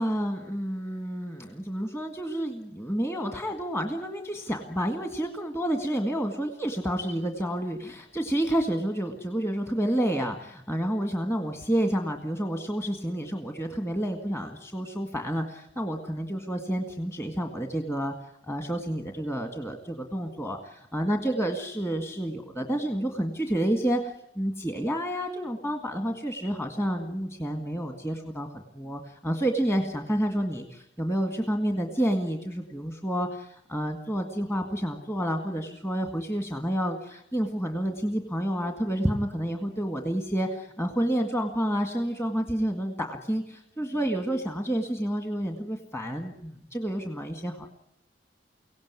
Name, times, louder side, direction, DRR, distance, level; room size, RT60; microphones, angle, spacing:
voice 1, 0.0-18.1 18.5-47.7, right 1 dB, 15° left, 5 dB, 1.9 m, -29 dB
24.0 x 17.5 x 9.7 m, 0.76 s
head